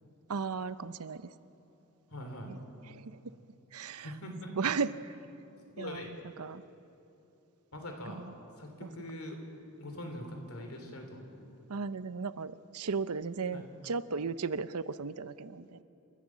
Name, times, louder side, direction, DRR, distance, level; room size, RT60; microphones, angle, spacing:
voice 1, 0.3-1.3 2.5-2.6 2.8-3.4 3.7-4.1 4.5-4.9 5.8-6.6 8.1-8.3 8.8-8.9 11.7-15.8, right 5 dB, 85° right, 14 dB, 0.7 m, -36 dB
voice 2, 2.1-2.5 4.0-4.5 5.8-6.1 7.7-8.2 8.6-9.4 9.8-11.2 13.5-13.6, left 1 dB, 70° left, 4 dB, 3.4 m, -42 dB
29.0 x 14.0 x 7.4 m, 2.9 s
head